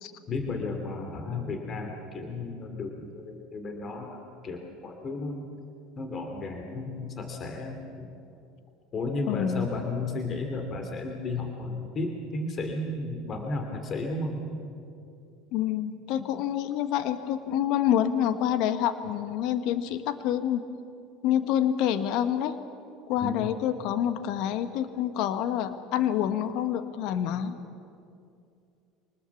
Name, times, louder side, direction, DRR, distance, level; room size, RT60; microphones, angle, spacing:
voice 1, 0.3-5.4 6.0-8.1 8.9-14.4 23.2-23.5, left 3 dB, 40° left, 4 dB, 2.9 m, -33 dB
voice 2, 9.2-9.7 15.5-20.6 21.2-22.6 23.1-27.6, left 10 dB, 65° left, 11 dB, 1.3 m, -27 dB
25.0 x 19.5 x 7.2 m, 2.5 s
hypercardioid pair, 80°, 0 cm